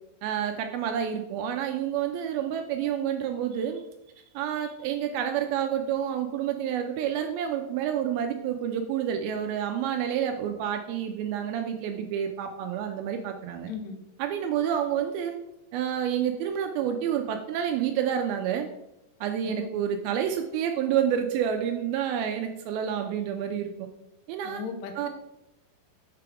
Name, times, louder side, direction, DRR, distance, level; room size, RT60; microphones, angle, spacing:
voice 1, 0.2-3.8 4.3-13.7 14.2-15.4 15.7-18.7 19.2-23.9 24.3-24.6 25.0-25.1, right 9 dB, 80° right, 5 dB, 2.2 m, -29 dB
voice 2, 13.7-14.0 19.4-19.7 24.4-25.1, left 6 dB, 90° left, 5 dB, 2.9 m, -37 dB
6.8 x 5.0 x 4.6 m, 0.89 s
omnidirectional pair, 4.7 m